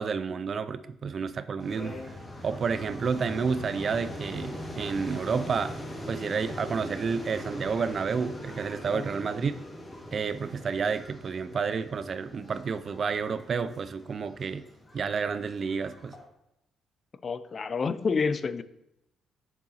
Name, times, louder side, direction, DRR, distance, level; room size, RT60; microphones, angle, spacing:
voice 1, 0.0-2.2 2.4-5.8 6.1-9.5 10.1-14.6 14.9-16.1, right 5 dB, 45° right, 0.3 m, -30 dB
sound 1, 1.6-16.2, left 1 dB, 20° left, 1.8 m, -42 dB
voice 2, 17.2-18.6, left 5 dB, 40° left, 0.4 m, -28 dB
6.7 x 6.1 x 2.8 m
cardioid pair, 90°, 0 cm